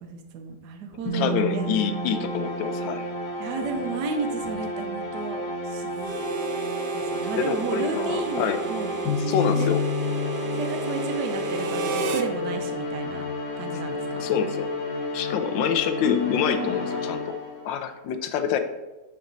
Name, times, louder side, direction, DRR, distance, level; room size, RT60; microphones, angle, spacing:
voice 1, 0.0-1.7 3.4-6.2 6.9-9.0 9.5-9.7 10.6-13.3 13.6-14.2 16.6-16.8, right 4 dB, 65° right, 5 dB, 1.3 m, -33 dB
voice 2, 1.1-3.1 7.3-8.6 9.2-9.8 13.7-13.8 14.2-14.7 15.1-17.4 17.6-18.6, left 8 dB, 85° left, 9 dB, 1.4 m, -26 dB
sound 1, 1.1-17.8, left 2 dB, 65° left, 2.0 m, -30 dB
Harmonica, 6.0-12.3, right 5 dB, 85° right, 1.5 m, -32 dB
10.0 x 4.1 x 4.0 m, 1.1 s
omnidirectional pair, 2.1 m